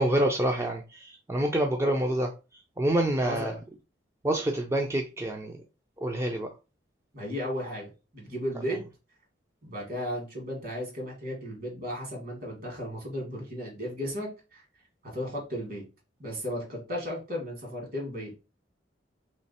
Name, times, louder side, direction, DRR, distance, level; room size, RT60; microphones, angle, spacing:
voice 1, 0.0-2.3 2.8-3.5 4.2-5.6 6.0-6.5, right 1 dB, 15° right, 0.4 m, -27 dB
voice 2, 3.2-3.6 7.1-8.8 9.6-14.6 15.0-15.8 16.2-18.3, equal, 50° right, 1.9 m, -35 dB
3.3 x 3.1 x 4.2 m
head